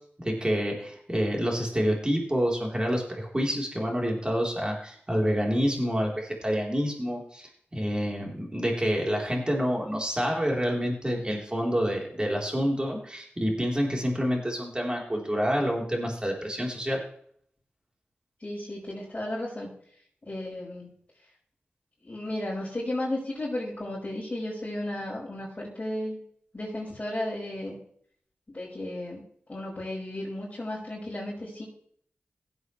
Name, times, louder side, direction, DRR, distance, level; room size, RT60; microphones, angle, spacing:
voice 1, 0.2-17.0, equal, 25° right, -1 dB, 3.7 m, -28 dB
voice 2, 18.4-19.7 20.3-20.9 22.0-26.2 26.5-27.8 28.5-29.2 29.5-31.6, left 1 dB, 35° left, -9 dB, 5.6 m, -34 dB
16.5 x 8.1 x 3.2 m, 0.62 s
cardioid pair, 45°, 4 cm